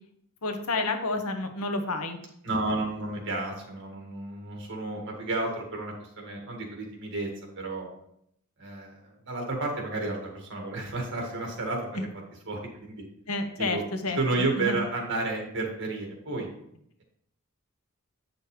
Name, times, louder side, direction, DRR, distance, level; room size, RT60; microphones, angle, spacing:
voice 1, 0.4-2.2 11.9-12.0 13.3-14.2 14.6-14.8, left 2 dB, 75° left, 6 dB, 1.0 m, -30 dB
voice 2, 2.4-7.3 7.6-7.9 8.6-12.1 12.5-13.0 13.6-13.8 14.2-16.5, right 2 dB, 55° right, 1 dB, 1.9 m, -31 dB
8.6 x 6.3 x 3.3 m, 0.71 s
head